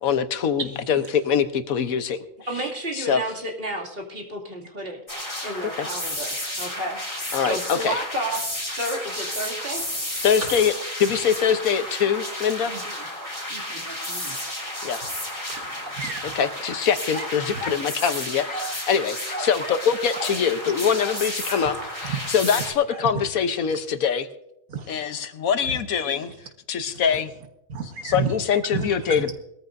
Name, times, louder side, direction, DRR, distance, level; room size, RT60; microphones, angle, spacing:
voice 1, 0.0-2.2 2.9-3.2 5.8-5.9 7.3-8.0 10.2-10.7 11.0-12.7 14.8-15.0 16.3-24.3 24.9-26.3 26.7-27.3 28.0-29.3, left 7 dB, 90° left, 1.4 m, -23 dB
voice 2, 2.5-5.0 5.4-7.0 7.5-8.4 8.8-9.8 12.6-13.0 13.5-14.3, right 1 dB, 45° right, 2.9 m, -32 dB
sound 1, 5.1-22.7, left 1 dB, 25° left, 3.8 m, -32 dB
voice 3, 15.5-16.3 22.0-22.3 24.7-25.3 27.7-28.3 28.7-29.2, right 6 dB, 90° right, 1.8 m, -31 dB
sound 2, 17.1-17.9 18.5-18.8 19.3-19.9 20.1-20.4 21.0-21.8 22.9-23.1, equal, 5° left, 2.5 m, -34 dB
21.0 x 13.5 x 2.6 m
omnidirectional pair, 1.4 m